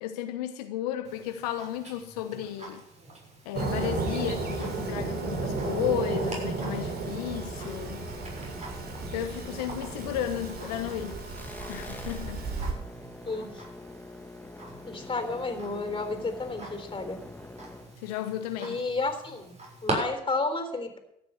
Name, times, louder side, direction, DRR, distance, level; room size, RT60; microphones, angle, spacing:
voice 1, 0.0-2.8 3.4-8.1 9.1-11.2 11.7-12.4 18.0-18.8, left 10 dB, 75° left, 8 dB, 1.0 m, -33 dB
Tick-tock, 1.0-19.9, right 2 dB, 35° right, 6.8 m, -44 dB
Fireworks, 3.5-12.7, right 3 dB, 50° right, 3.8 m, -33 dB
sound 1, 3.7-18.3, left 2 dB, 10° left, 1.6 m, -45 dB
voice 2, 13.3-13.6 14.8-17.2 18.6-19.5 19.8-21.0, left 3 dB, 25° left, 8 dB, 3.6 m, -31 dB
13.5 x 9.5 x 7.9 m, 0.81 s
hypercardioid pair, 55°, 20 cm